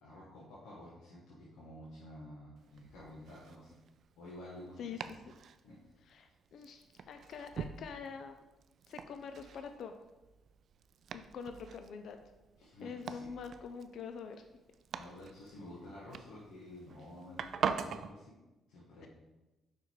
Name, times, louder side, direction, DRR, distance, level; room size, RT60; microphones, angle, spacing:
voice 1, 0.0-3.8 4.2-5.1 5.6-5.8 12.6-13.3 14.9-18.4 18.7-19.1, left 1 dB, 85° left, -7 dB, 1.4 m, -51 dB
Domestic sounds home sounds, 2.6-18.1, right 7 dB, 60° right, 0.3 m, -44 dB
voice 2, 6.1-8.4 8.9-10.0 11.1-12.2 12.8-14.4, left 6 dB, 65° left, 7 dB, 0.4 m, -45 dB
5.1 x 4.4 x 4.6 m, 1.1 s
cardioid pair, 90°, 0 cm